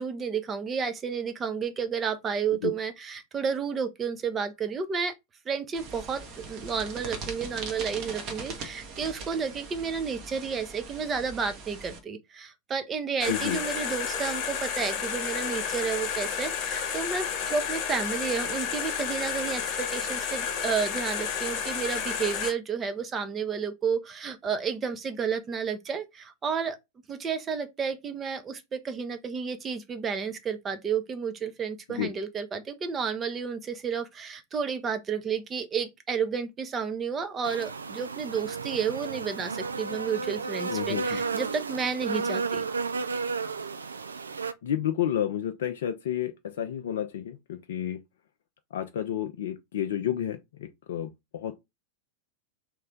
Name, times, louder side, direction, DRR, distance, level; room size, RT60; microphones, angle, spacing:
voice 1, 0.0-5.1 5.5-26.8 27.1-42.7, right 6 dB, 20° right, 0.7 m, -31 dB
sound 1, 5.7-12.0, right 4 dB, 40° right, 1.1 m, -40 dB
sound 2, 13.2-22.5, left 7 dB, 40° left, 1.1 m, -31 dB
voice 2, 13.3-13.6 31.9-32.1 40.7-41.2 44.6-48.0 48.7-51.6, left 10 dB, 60° left, 0.4 m, -31 dB
sound 3, 37.4-44.5, right 4 dB, 75° right, 0.3 m, -32 dB
3.3 x 3.1 x 3.7 m
figure-of-eight pair, 90°, 0 cm